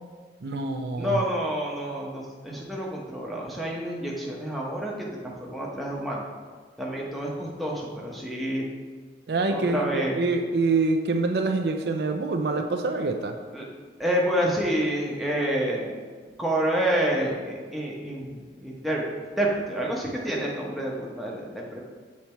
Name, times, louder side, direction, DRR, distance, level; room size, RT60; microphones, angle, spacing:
voice 1, 0.4-1.2 9.3-13.4, right 3 dB, 60° right, 5 dB, 0.5 m, -26 dB
voice 2, 1.0-6.2 6.8-8.7 9.5-10.3 13.5-13.6 14.0-15.9 16.4-21.8, right 1 dB, ahead, -3 dB, 0.9 m, -28 dB
7.3 x 4.2 x 4.4 m, 1.5 s
head